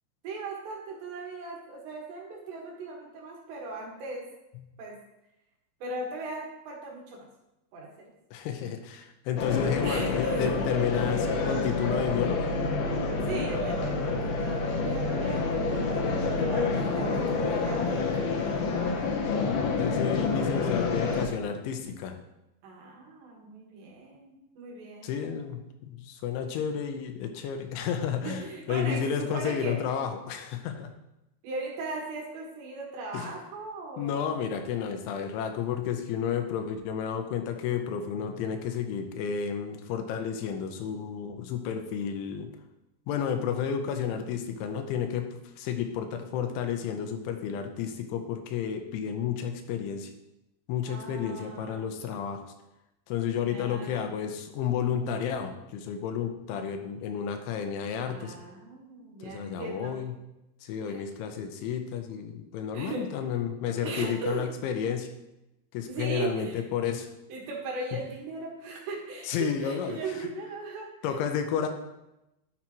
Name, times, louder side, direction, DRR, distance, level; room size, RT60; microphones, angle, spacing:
voice 1, 0.2-4.3 4.8-5.0 5.8-7.3 7.7-7.9 9.8-10.5 13.2-18.5 18.8-19.1 22.6-25.1 28.2-29.8 31.4-34.5 50.9-52.0 53.4-54.1 58.0-60.0 60.9-61.0 62.7-63.0 63.8-64.4 65.9-66.6 67.3-71.2, right 3 dB, 70° right, -1 dB, 3.8 m, -38 dB
voice 2, 8.3-12.5 19.7-22.2 25.0-30.9 33.1-33.3 34.0-42.5 43.1-50.1 50.7-52.4 53.1-58.4 59.2-60.1 60.6-65.1 65.7-67.1 69.3-70.0 71.0-71.7, left 8 dB, 90° left, 6 dB, 3.2 m, -31 dB
sound 1, 9.4-21.3, left 4 dB, 70° left, 2.4 m, -28 dB
11.5 x 7.4 x 3.1 m, 0.91 s
omnidirectional pair, 5.4 m